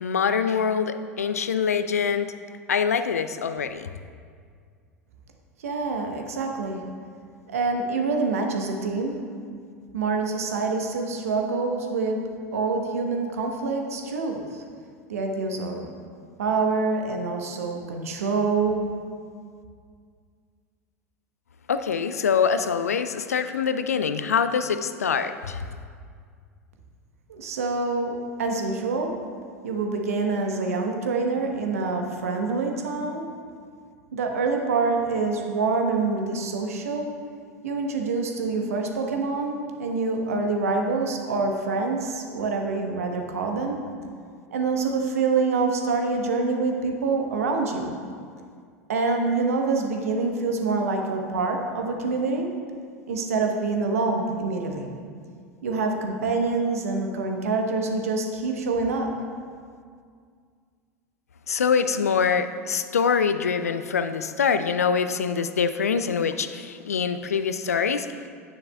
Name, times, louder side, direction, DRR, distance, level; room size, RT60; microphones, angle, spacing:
voice 1, 0.0-2.3 2.7-3.9 21.7-25.6 61.5-68.3, left 6 dB, 75° left, 11 dB, 0.4 m, -24 dB
voice 2, 5.6-6.8 7.5-9.2 9.9-14.4 15.1-15.8 16.4-18.9 27.3-29.1 29.6-33.2 34.1-37.1 37.6-43.8 44.5-47.9 48.9-52.5 53.1-54.9 55.6-59.1, right 4 dB, 70° right, 3 dB, 1.0 m, -26 dB
9.7 x 9.4 x 2.3 m, 2.1 s
figure-of-eight pair, 80°, 8 cm